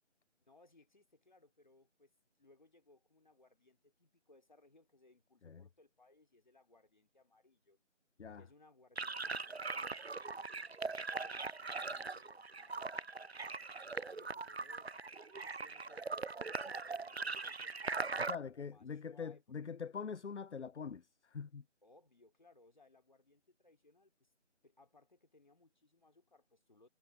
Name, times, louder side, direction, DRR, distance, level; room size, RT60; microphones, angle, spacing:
voice 1, 0.4-2.1 2.4-7.8 8.3-14.9 15.6-19.6 21.8-24.3 24.6-26.9, left 2 dB, 40° left, 2.8 m, -67 dB
sound 1, 9.0-18.4, right 4 dB, 55° right, 0.6 m, -41 dB
voice 2, 18.2-21.6, left 6 dB, 65° left, 0.5 m, -44 dB
figure-of-eight pair, 170°, 37 cm